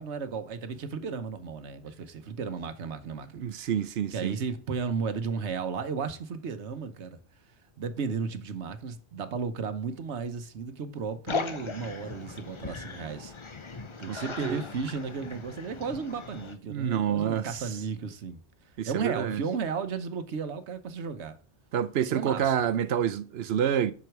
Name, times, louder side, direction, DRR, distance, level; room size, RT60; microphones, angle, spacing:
voice 1, 0.0-3.5 4.1-7.2 7.8-13.3 14.0-18.4 18.9-21.4 22.1-22.5, right 5 dB, 85° right, 1.2 m, -34 dB
voice 2, 3.3-4.4 14.1-14.6 16.7-17.6 18.8-19.4 21.7-23.9, right 9 dB, 70° right, 0.9 m, -28 dB
sound 1, 11.3-16.5, left 4 dB, 35° left, 0.6 m, -38 dB
7.8 x 6.1 x 4.6 m
omnidirectional pair, 1.1 m